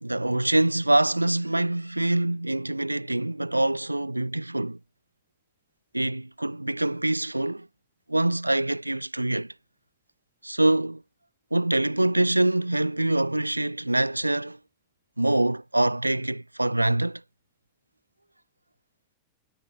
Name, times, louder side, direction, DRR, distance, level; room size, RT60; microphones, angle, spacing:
voice 1, 0.0-4.8 5.9-7.7 8.1-9.5 10.4-11.0 11.5-14.6 15.2-17.2, right 1 dB, 85° right, 1.9 m, -25 dB
figure-of-eight pair, 90°, 0 cm